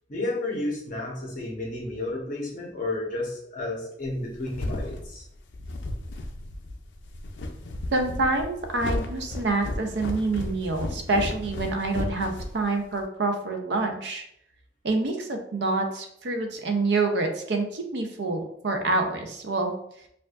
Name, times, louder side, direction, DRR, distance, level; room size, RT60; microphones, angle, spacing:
voice 1, 0.1-5.2, left 2 dB, 45° left, -2 dB, 1.0 m, -32 dB
sound 1, 4.1-13.0, left 2 dB, 80° left, 0.4 m, -34 dB
voice 2, 7.9-14.2 14.8-19.7, right 3 dB, 65° right, 4 dB, 0.6 m, -27 dB
4.5 x 2.4 x 2.5 m, 0.72 s
head